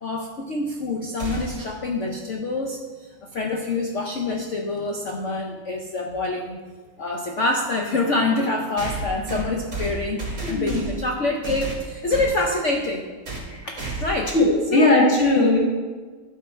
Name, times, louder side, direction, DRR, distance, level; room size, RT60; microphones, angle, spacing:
voice 1, 0.0-6.6 7.0-13.0 13.6-14.3 14.7-14.9, left 2 dB, 75° left, 2 dB, 0.6 m, -26 dB
sound 1, 1.2-1.8 3.9-4.0 5.1-5.2 8.8-11.1 11.4-12.4 13.2-13.5 13.8-14.2, right 2 dB, 35° right, 2.7 m, -31 dB
voice 2, 10.4-10.8 13.4-13.7 14.3-15.6, left 2 dB, 30° left, -3 dB, 2.1 m, -19 dB
12.0 x 5.7 x 4.4 m, 1.4 s
omnidirectional pair, 2.3 m